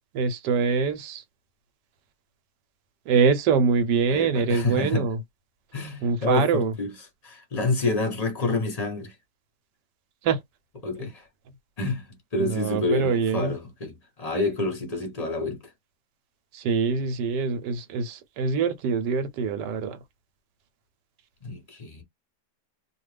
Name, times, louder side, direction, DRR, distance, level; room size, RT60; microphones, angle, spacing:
voice 1, 0.1-1.2 3.1-5.2 6.0-6.7 10.2-10.4 12.4-13.5 16.5-20.0, right 5 dB, 85° right, 1.3 m, -24 dB
voice 2, 4.1-5.1 5.7-6.9 7.2-9.1 10.8-11.3 11.8-15.6 21.4-22.0, left 2 dB, 30° left, 0.9 m, -28 dB
2.8 x 2.4 x 3.2 m
omnidirectional pair, 1.8 m